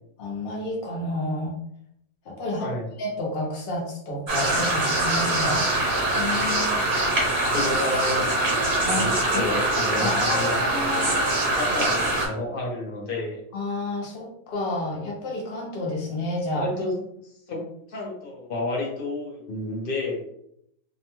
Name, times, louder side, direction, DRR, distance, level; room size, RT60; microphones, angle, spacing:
voice 1, 0.2-1.5 2.3-2.7 3.0-5.6 6.1-6.9 8.8-9.4 10.0-11.3 13.5-16.7, left 1 dB, 75° left, -2 dB, 0.5 m, -30 dB
voice 2, 2.6-2.9 7.5-10.6 10.9-11.1 11.5-13.4 16.5-17.6 17.9-20.3, left 2 dB, 50° left, -2 dB, 0.7 m, -31 dB
sound 1, 4.3-12.3, right 2 dB, 50° right, 0.8 m, -23 dB
2.6 x 2.1 x 2.9 m, 0.73 s
omnidirectional pair, 1.7 m